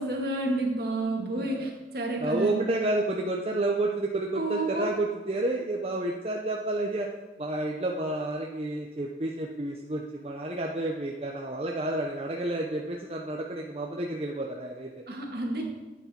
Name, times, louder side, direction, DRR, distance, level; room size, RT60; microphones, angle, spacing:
voice 1, 0.0-2.7 4.4-4.9 15.1-15.6, right 2 dB, 60° right, 0 dB, 2.1 m, -30 dB
voice 2, 1.4-1.7 2.2-7.1 7.4-14.9, right 2 dB, 35° right, 0 dB, 0.7 m, -30 dB
11.5 x 8.4 x 4.4 m, 1.2 s
head